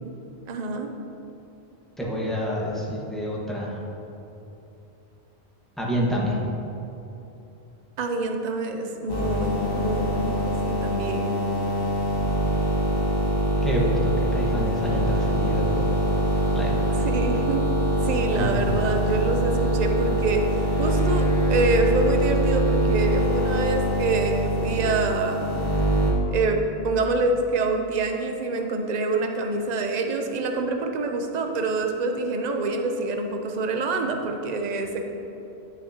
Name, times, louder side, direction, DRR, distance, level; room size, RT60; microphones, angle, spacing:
voice 1, 0.5-0.9 8.0-11.4 17.0-17.6 18.0-25.5 26.3-35.0, right 3 dB, 45° right, 4 dB, 0.7 m, -26 dB
voice 2, 2.0-3.8 5.8-6.4 13.6-15.8 16.5-17.1 18.3-18.5, equal, ahead, -5 dB, 1.3 m, -28 dB
sound 1, 9.1-26.1, right 1 dB, 20° left, 1.2 m, -24 dB
11.5 x 6.6 x 2.9 m, 2.9 s
omnidirectional pair, 1.1 m